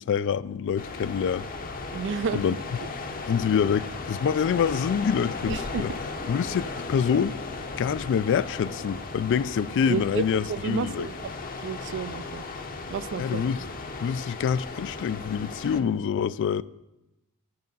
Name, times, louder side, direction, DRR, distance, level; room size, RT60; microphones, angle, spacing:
voice 1, 0.0-1.5 2.3-2.5 3.3-5.9 6.3-7.4 7.8-11.1 13.2-13.6 14.0-16.6, left 7 dB, 55° left, 0.3 m, -26 dB
sound 1, 0.8-15.8, left 3 dB, 40° left, 0.7 m, -36 dB
voice 2, 1.9-2.4 5.5-5.9 9.9-10.2 10.5-11.3 11.6-12.4 12.9-13.4, right 6 dB, 55° right, 0.4 m, -31 dB
9.6 x 8.5 x 5.4 m
head